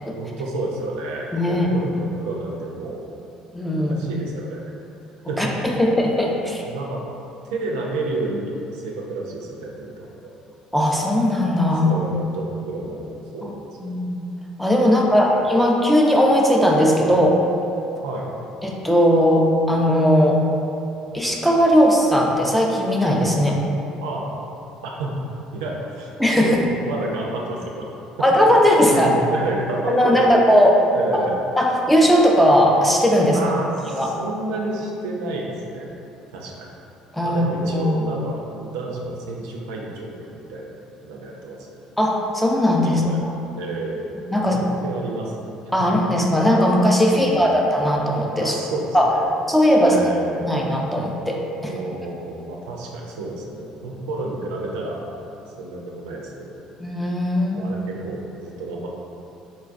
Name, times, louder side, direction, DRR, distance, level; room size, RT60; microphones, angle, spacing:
voice 1, 0.1-3.1 3.9-4.6 5.3-5.8 6.7-7.0 7.5-10.3 11.8-14.0 15.0-15.5 18.0-18.3 24.0-24.2 25.0-25.1 25.5-26.1 26.4-27.9 28.9-30.4 30.9-31.4 33.3-35.9 36.3-36.7 37.2-40.7 41.0-41.6 42.8-43.2 43.6-45.5 45.8-45.9 47.1-47.6 48.4-49.3 49.8-50.5 51.6-55.2 55.6-56.6 57.5-58.9, right 2 dB, 80° right, -2 dB, 0.4 m, -30 dB
voice 2, 1.3-1.7 3.5-3.9 5.4-6.6 10.7-11.9 13.4-13.5 13.8-14.2 14.6-17.4 18.6-20.4 21.1-23.6 26.2-26.6 28.2-29.1 29.9-30.8 31.1-31.2 31.6-33.4 33.9-34.1 37.1-37.9 42.0-43.0 44.1-44.6 45.7-48.5 48.9-49.1 49.5-50.0 50.4-51.7 56.8-57.7, equal, 5° left, -2 dB, 0.5 m, -18 dB
4.0 x 2.2 x 2.5 m, 2.7 s
hypercardioid pair, 65°, 3 cm